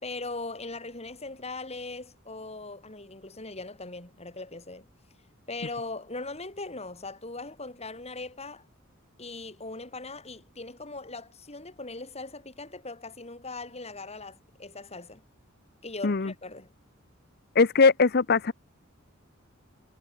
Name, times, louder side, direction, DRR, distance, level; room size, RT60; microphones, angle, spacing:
voice 1, 0.0-4.9 5.5-8.7 9.2-15.2 15.8-16.7, left 3 dB, 30° left, 5.4 m, -40 dB
voice 2, 17.6-18.5, left 4 dB, 50° left, 0.7 m, -21 dB
head